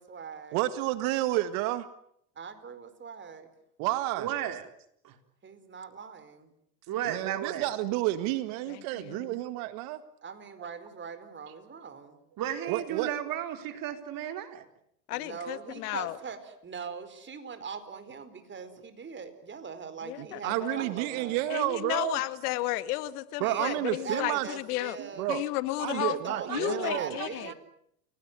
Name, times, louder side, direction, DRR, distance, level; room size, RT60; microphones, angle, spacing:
voice 1, 0.0-0.6 2.4-3.5 5.4-6.5 10.2-12.2 15.1-21.4 23.4-25.3 25.8-27.5, right 6 dB, 25° right, 10 dB, 4.6 m, -41 dB
voice 2, 0.5-1.9 3.8-4.3 7.1-10.0 12.7-13.1 20.4-22.2 23.4-24.5 25.0-25.4 25.8-27.2, right 16 dB, 60° right, 12 dB, 1.9 m, -30 dB
voice 3, 4.2-4.7 5.0-5.2 6.9-7.7 11.5-11.6 12.4-14.6 26.5-27.5, right 11 dB, 45° right, 7 dB, 4.1 m, -34 dB
voice 4, 8.7-9.4 15.1-16.2 20.0-20.9 21.5-25.0 25.3-26.2 26.5-27.5, left 17 dB, 70° left, 13 dB, 2.0 m, -33 dB
29.5 x 18.5 x 9.6 m, 0.73 s
hypercardioid pair, 105°, 47 cm